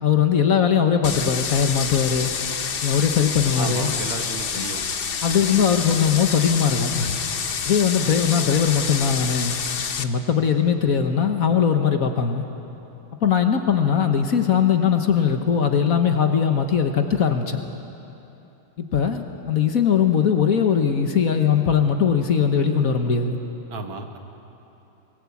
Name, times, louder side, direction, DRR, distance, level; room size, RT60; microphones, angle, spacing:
voice 1, 0.0-2.3 2.8-3.9 4.5-4.6 5.2-7.2 7.6-9.5 10.0-12.4 13.2-17.6 18.8-23.4, left 7 dB, 50° left, 6 dB, 1.4 m, -20 dB
sound 1, 1.0-10.0, left 6 dB, 75° left, 0.5 m, -28 dB
voice 2, 3.6-4.9 5.3-5.8 23.7-24.2, right 4 dB, 80° right, 5 dB, 2.3 m, -33 dB
23.5 x 19.5 x 8.5 m, 3.0 s
omnidirectional pair, 2.2 m